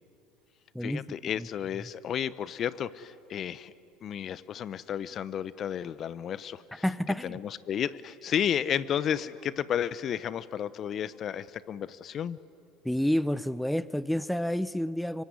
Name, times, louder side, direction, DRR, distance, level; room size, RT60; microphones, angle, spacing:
voice 1, 0.8-3.7 4.0-6.8 7.2-12.4, left 9 dB, 45° left, 18 dB, 0.8 m, -32 dB
voice 2, 6.8-7.4 12.8-15.2, equal, 5° left, 17 dB, 0.7 m, -29 dB
25.0 x 24.0 x 9.7 m, 2.6 s
hypercardioid pair, 75°, 0 cm